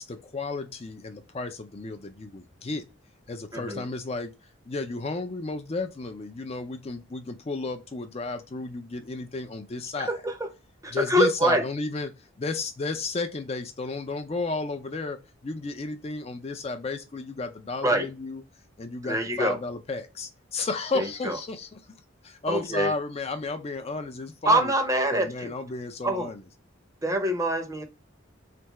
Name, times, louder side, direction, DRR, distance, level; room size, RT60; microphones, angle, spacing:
voice 1, 0.0-2.8 3.3-4.3 4.7-10.2 10.9-12.1 12.4-18.4 18.8-21.8 22.2-24.7 25.1-26.4, left 3 dB, 30° left, 0.4 m, -33 dB
voice 2, 3.5-3.8 10.0-10.5 10.8-11.6 17.8-18.1 19.0-19.6 20.9-21.4 22.5-22.9 24.5-25.5 26.0-26.3 27.0-27.8, right 1 dB, 15° right, 0.7 m, -25 dB
3.5 x 3.4 x 3.0 m
head